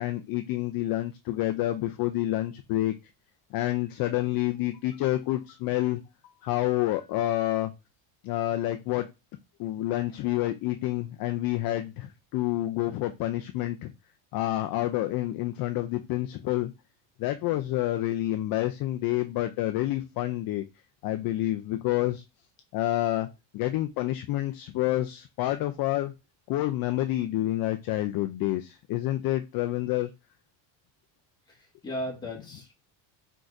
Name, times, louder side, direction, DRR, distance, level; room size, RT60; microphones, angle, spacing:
voice 1, 0.0-2.9 3.5-7.7 8.2-9.1 9.6-13.9 14.3-16.7 17.2-20.6 21.0-22.2 22.7-23.3 23.5-26.1 26.5-30.1, left 15 dB, 50° left, 0.5 m, -28 dB
voice 2, 31.5-32.7, equal, 10° left, 1.8 m, -36 dB
4.7 x 3.9 x 2.5 m
cardioid pair, 140°, 48 cm